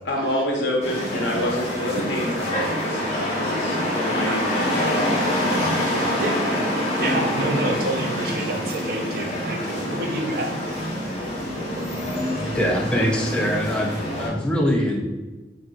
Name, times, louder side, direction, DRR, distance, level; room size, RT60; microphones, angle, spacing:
voice 1, 0.0-6.3, left 1 dB, 85° left, 0 dB, 0.7 m, -28 dB
sound 1, 0.8-14.3, equal, 35° left, 0.9 m, -26 dB
voice 2, 7.0-10.5, right 2 dB, 60° right, 2 dB, 0.5 m, -28 dB
voice 3, 12.5-15.0, equal, 5° left, -1 dB, 0.4 m, -23 dB
3.6 x 2.8 x 2.4 m, 1.2 s
head